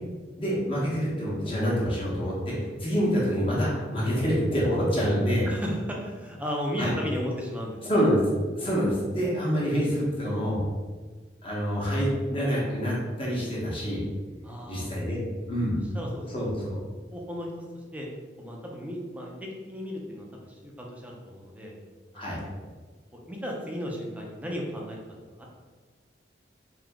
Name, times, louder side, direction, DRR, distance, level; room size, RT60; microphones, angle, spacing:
voice 1, 0.4-5.5 6.8-6.9 7.9-8.2 8.5-10.6 11.4-14.1 14.7-15.2 15.5-15.8 16.3-16.8 22.1-22.4, equal, 30° left, -6 dB, 1.1 m, -26 dB
voice 2, 5.5-7.8 14.4-14.9 15.9-16.7 17.1-17.5 17.9-18.1 18.4-21.7 22.1-22.5 23.1-25.0 25.4-25.5, equal, 10° right, -2 dB, 0.6 m, -35 dB
3.6 x 2.8 x 3.5 m, 1.4 s
head